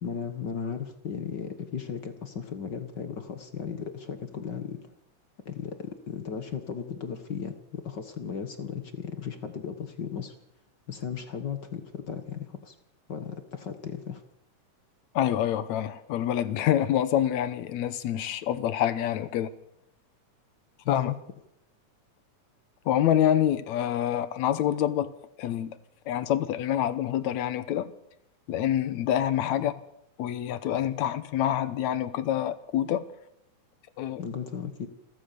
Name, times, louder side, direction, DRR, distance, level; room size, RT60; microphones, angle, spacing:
voice 1, 0.0-4.9 5.4-10.3 10.9-12.7 13.1-14.2 20.8-21.2 29.6-29.7 34.2-34.9, left 7 dB, 45° left, 9 dB, 1.5 m, -36 dB
voice 2, 15.2-19.5 20.9-21.1 22.9-25.1 25.4-25.8 26.1-27.9 28.5-29.7 30.2-33.0 34.0-34.2, left 11 dB, 70° left, 14 dB, 2.2 m, -26 dB
28.5 x 13.5 x 6.9 m, 0.79 s
omnidirectional pair, 3.5 m